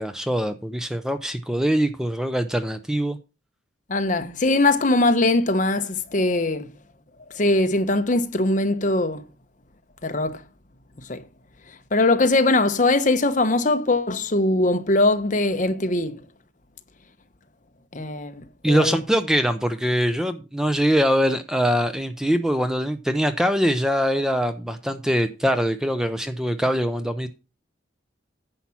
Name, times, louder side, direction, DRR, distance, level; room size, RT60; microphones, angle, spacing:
voice 1, 0.0-3.2 18.6-27.3, equal, 5° right, 0.5 m, -23 dB
voice 2, 3.9-6.7 7.3-9.2 10.0-10.4 11.1-11.2 11.9-16.2 17.9-19.0, left 2 dB, 40° left, 0.9 m, -21 dB
10.0 x 5.8 x 5.7 m
head